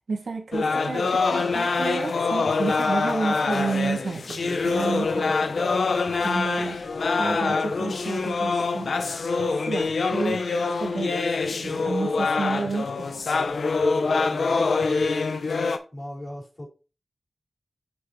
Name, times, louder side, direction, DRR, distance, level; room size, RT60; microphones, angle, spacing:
voice 1, 0.1-5.3 5.7-5.8 6.2-6.8 7.2-8.9 9.5-11.2 11.6-13.2, right 4 dB, 80° right, 1.5 m, -31 dB
sound 1, 0.5-15.8, left 4 dB, 90° left, 0.7 m, -25 dB
Run, 1.0-13.5 13.7-15.1, equal, 15° left, 3.1 m, -47 dB
voice 2, 14.3-15.0 15.9-16.7, equal, 35° left, 4.1 m, -39 dB
7.0 x 5.9 x 3.2 m
wide cardioid pair, 70°, 0 cm